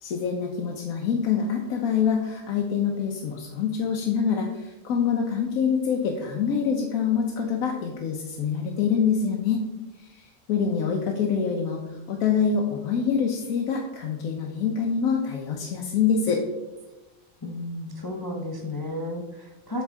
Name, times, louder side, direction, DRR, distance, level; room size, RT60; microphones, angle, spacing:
voice 1, 0.0-9.6 10.0-16.4, left 6 dB, 75° left, 1 dB, 1.1 m, -25 dB
voice 2, 17.4-19.8, left 1 dB, 35° left, 0 dB, 0.3 m, -33 dB
8.2 x 3.6 x 3.5 m, 1.1 s
omnidirectional pair, 1.5 m